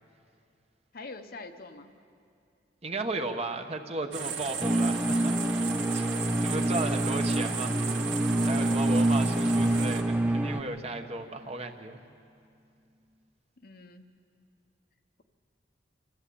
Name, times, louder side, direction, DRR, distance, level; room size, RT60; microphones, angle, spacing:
voice 1, 0.9-1.9 13.6-14.1, left 3 dB, 55° left, 6 dB, 1.1 m, -44 dB
voice 2, 2.8-6.1 6.4-7.8 8.1-12.0, right 2 dB, 35° right, 5 dB, 1.2 m, -35 dB
sound 1, 4.1-10.0, right 6 dB, 85° right, 1.8 m, -36 dB
sound 2, 4.6-10.6, right 1 dB, 10° right, 0.6 m, -26 dB
Bowed string instrument, 7.3-12.3, right 1 dB, 55° right, 1.7 m, -45 dB
27.0 x 14.0 x 8.6 m, 2.5 s
head